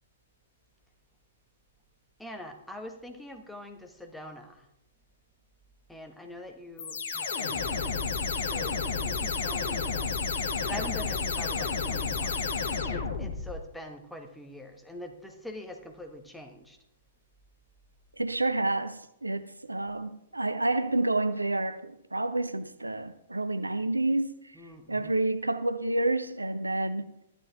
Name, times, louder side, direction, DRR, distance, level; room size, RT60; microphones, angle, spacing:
voice 1, 2.2-4.7 5.9-8.0 8.5-10.2 10.6-12.5 12.9-16.8 24.5-25.2, left 1 dB, 5° left, 1.5 m, -44 dB
sound 1, 6.8-13.6, left 5 dB, 55° left, 1.6 m, -31 dB
voice 2, 18.2-24.6 24.9-27.1, right 2 dB, 80° right, 0.7 m, -29 dB
14.0 x 11.0 x 3.6 m
figure-of-eight pair, 110°, 0 cm